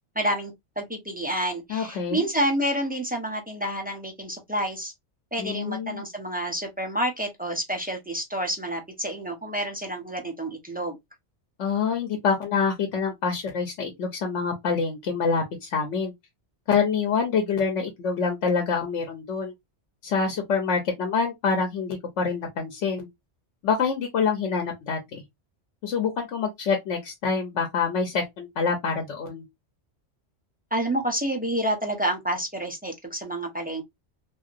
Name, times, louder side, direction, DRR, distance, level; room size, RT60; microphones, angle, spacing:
voice 1, 0.1-4.9 5.3-11.0 30.7-33.8, right 1 dB, 10° right, 0.6 m, -29 dB
voice 2, 1.7-2.3 5.4-6.0 11.6-16.1 16.7-19.5 20.0-23.1 23.6-25.2 25.8-29.4, left 5 dB, 85° left, 1.1 m, -26 dB
2.8 x 2.7 x 2.5 m
omnidirectional pair, 1.2 m